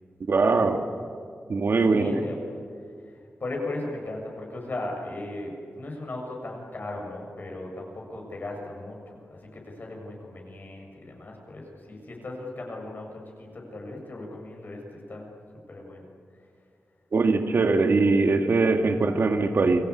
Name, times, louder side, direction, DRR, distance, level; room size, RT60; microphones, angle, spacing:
voice 1, 0.3-0.8 1.5-2.2 17.1-19.8, right 3 dB, 60° right, 5 dB, 2.0 m, -21 dB
voice 2, 1.9-2.4 3.4-13.1 13.4-14.8 15.1-15.3 15.7-16.0, left 2 dB, 45° left, 1 dB, 7.5 m, -37 dB
29.0 x 23.5 x 8.5 m, 2.3 s
wide cardioid pair, 145°, 4 cm